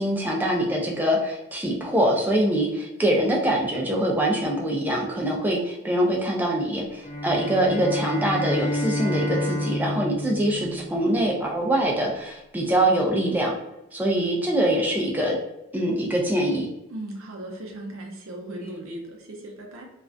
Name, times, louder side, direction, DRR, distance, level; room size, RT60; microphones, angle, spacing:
voice 1, 0.0-13.6 13.9-15.4 15.7-16.7, right 1 dB, 10° right, -1 dB, 0.3 m, -24 dB
sound 1, 7.0-11.5, left 1 dB, 45° left, 0.8 m, -30 dB
voice 2, 10.5-10.9 16.9-19.9, right 1 dB, 70° right, 2 dB, 0.5 m, -38 dB
2.4 x 2.1 x 2.4 m, 0.90 s
head